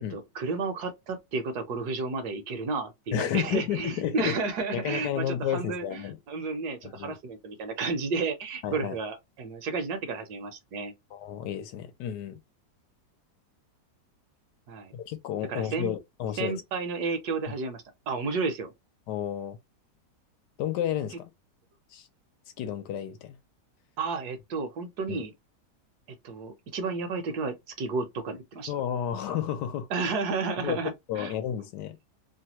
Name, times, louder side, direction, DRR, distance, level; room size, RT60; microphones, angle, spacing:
voice 1, 0.1-10.9 14.7-14.9 15.5-15.9 16.4-18.7 24.0-25.3 26.2-28.7 29.9-31.3, right 4 dB, 65° right, 1.2 m, -32 dB
voice 2, 3.1-4.4 4.7-6.2 6.8-7.2 8.6-9.0 11.1-12.4 14.9-16.6 19.1-19.6 20.6-21.3 21.9-22.1 22.6-23.4 25.1-25.2 28.7-29.9 30.6-32.0, left 10 dB, 75° left, 1.2 m, -31 dB
3.2 x 2.2 x 2.8 m
omnidirectional pair, 1.9 m